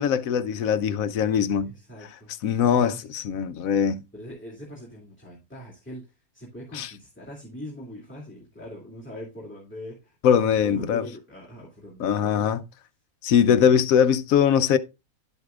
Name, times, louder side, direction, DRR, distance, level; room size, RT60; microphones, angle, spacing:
voice 1, 0.0-1.7 2.4-4.0 6.7-6.9 10.2-11.1 12.0-12.6 13.2-14.8, left 8 dB, 75° left, 1.0 m, -21 dB
voice 2, 1.6-2.5 2.8-3.1 4.1-10.1 10.6-12.5, left 1 dB, 10° left, 2.4 m, -42 dB
11.0 x 8.0 x 2.3 m
omnidirectional pair, 1.5 m